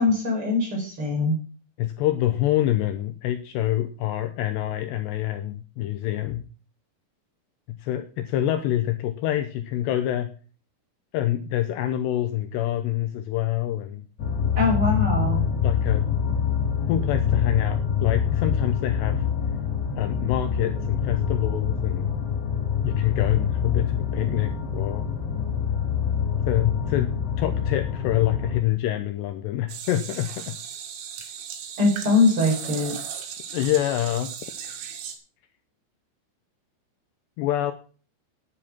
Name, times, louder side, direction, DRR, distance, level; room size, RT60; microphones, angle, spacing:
voice 1, 0.0-1.4 14.5-15.4 31.8-33.0, left 3 dB, 30° right, 0 dB, 5.2 m, -22 dB
voice 2, 1.8-6.4 7.8-10.3 11.1-14.1 15.6-16.0 16.9-19.2 19.9-22.1 22.8-25.1 26.5-27.1 27.4-30.6 33.5-34.3 37.4-37.7, left 13 dB, 75° left, 8 dB, 2.7 m, -26 dB
sound 1, 14.2-28.6, left 7 dB, 60° left, 4.9 m, -25 dB
sound 2, 29.7-35.2, right 8 dB, 85° right, 4.5 m, -37 dB
10.0 x 9.6 x 6.0 m, 0.39 s
omnidirectional pair, 5.5 m